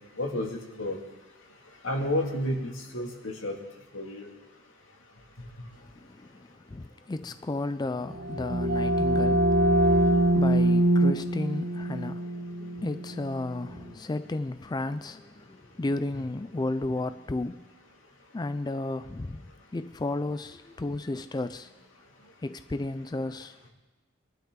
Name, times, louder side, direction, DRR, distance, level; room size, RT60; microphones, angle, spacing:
voice 1, 0.2-1.0 1.8-3.6 3.9-4.3, left 1 dB, 90° left, 1 dB, 2.2 m, -31 dB
voice 2, 6.0-17.6 18.3-19.4 19.7-21.7 22.4-23.5, left 2 dB, 20° left, 11 dB, 0.4 m, -33 dB
sound 1, 8.0-13.6, right 1 dB, 55° right, 1.2 m, -24 dB
23.5 x 11.5 x 3.8 m, 1.1 s
head